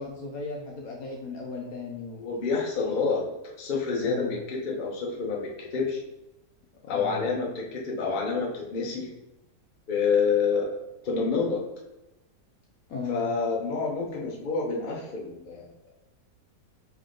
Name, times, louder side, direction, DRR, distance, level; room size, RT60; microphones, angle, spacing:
voice 1, 0.0-2.3 2.8-2.9 4.0-4.4 6.8-7.3 12.9-13.3, left 4 dB, 65° left, 0 dB, 0.9 m, -36 dB
voice 2, 2.2-6.0 6.9-9.1 9.9-10.7 11.0-11.6 13.1-15.7, left 5 dB, 45° left, -2 dB, 0.6 m, -28 dB
3.7 x 3.4 x 3.7 m, 0.94 s
omnidirectional pair, 1.9 m